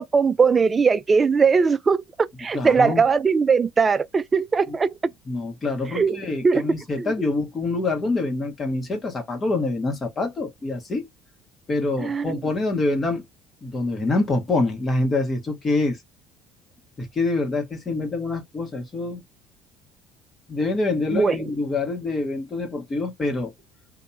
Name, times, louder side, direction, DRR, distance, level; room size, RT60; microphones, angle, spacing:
voice 1, 0.0-4.9 5.9-7.1 12.0-12.3 21.1-21.5, right 5 dB, 25° right, 0.3 m, -20 dB
voice 2, 2.5-3.0 4.7-4.8 5.3-11.1 11.7-13.2 13.6-16.0 17.0-19.2 20.5-23.5, left 2 dB, 25° left, 1.3 m, -25 dB
2.8 x 2.5 x 3.3 m
cardioid pair, 125°, 0 cm